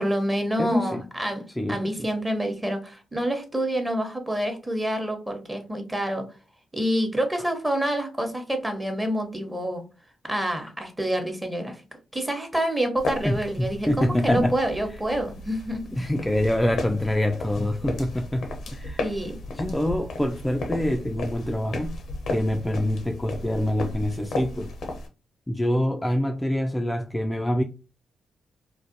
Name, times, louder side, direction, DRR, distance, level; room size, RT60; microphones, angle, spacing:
voice 1, 0.0-1.4 1.7-6.3 6.7-9.8 10.2-11.8 12.1-15.8 19.0-19.4, right 1 dB, 15° right, 0.9 m, -27 dB
voice 2, 0.6-1.1 1.6-2.1 13.2-14.6 15.9-19.0 19.5-22.0 22.3-24.7 25.5-27.6, left 1 dB, 15° left, 0.3 m, -25 dB
sound 1, 13.0-25.1, left 2 dB, 70° left, 0.5 m, -35 dB
2.4 x 2.1 x 2.6 m
hypercardioid pair, 40°, 0 cm